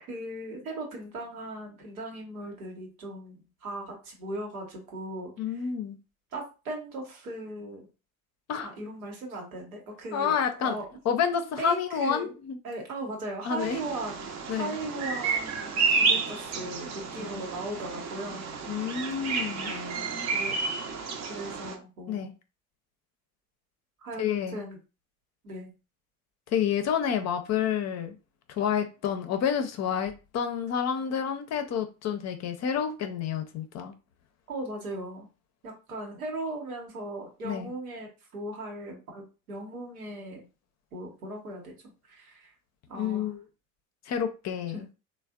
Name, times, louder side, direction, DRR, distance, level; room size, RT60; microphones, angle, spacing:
voice 1, 0.1-5.7 6.3-7.9 8.6-10.8 11.6-12.4 12.6-18.4 19.7-20.6 21.3-22.4 24.0-24.8 25.4-25.7 34.5-35.3 35.6-40.5 40.9-42.5 42.9-43.3 44.7-44.8, right 2 dB, 90° right, 1.0 m, -38 dB
voice 2, 5.4-6.0 8.5-8.7 10.1-10.8 11.1-12.6 13.4-13.8 14.5-14.7 17.2-17.3 18.7-19.7 22.1-22.3 24.2-24.6 26.5-28.1 28.5-33.9 37.4-37.7 42.9-43.4 44.1-44.9, left 8 dB, 40° left, 0.6 m, -29 dB
Bird vocalization bird call bird song, 13.6-21.8, right 4 dB, 40° right, 0.6 m, -31 dB
3.3 x 2.2 x 2.3 m
hypercardioid pair, 70°, 42 cm